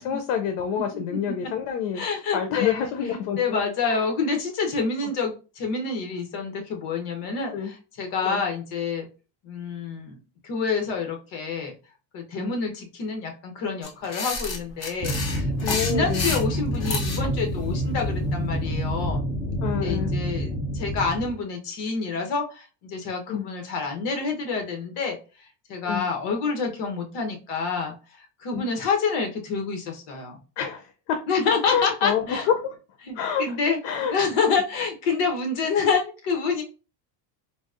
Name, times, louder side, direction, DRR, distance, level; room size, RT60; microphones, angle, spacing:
voice 1, 0.0-2.0 2.3-4.0 5.0-5.1 7.5-7.7 8.2-8.4 12.3-12.5 15.6-16.4 19.6-20.1 23.3-23.5 25.8-26.1 28.5-28.7 30.6-31.2 31.6-32.7 33.1-33.6 33.8-34.1, left 8 dB, 85° left, 6 dB, 0.7 m, -28 dB
voice 2, 1.9-9.1 9.4-10.2 10.4-11.8 12.1-19.3 19.7-25.2 25.7-27.9 28.4-30.4 31.3-32.5 33.0-33.8 34.1-36.6, left 5 dB, 55° left, 3 dB, 1.0 m, -27 dB
sound 1, 13.8-17.3, left 4 dB, 35° left, 0.6 m, -30 dB
sound 2, 15.0-21.3, equal, 10° left, 0.9 m, -27 dB
3.9 x 2.0 x 2.4 m, 0.33 s
cardioid pair, 170°, 49 cm